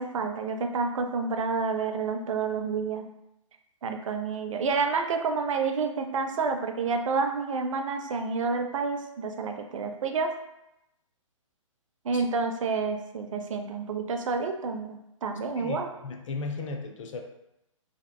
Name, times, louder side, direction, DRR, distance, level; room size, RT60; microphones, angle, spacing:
voice 1, 0.0-3.1 3.8-10.3 12.0-15.9, right 4 dB, 70° right, 5 dB, 0.4 m, -29 dB
voice 2, 15.6-17.2, left 3 dB, 65° left, 4 dB, 0.5 m, -36 dB
2.7 x 2.3 x 2.2 m, 0.86 s
hypercardioid pair, 150°, 17 cm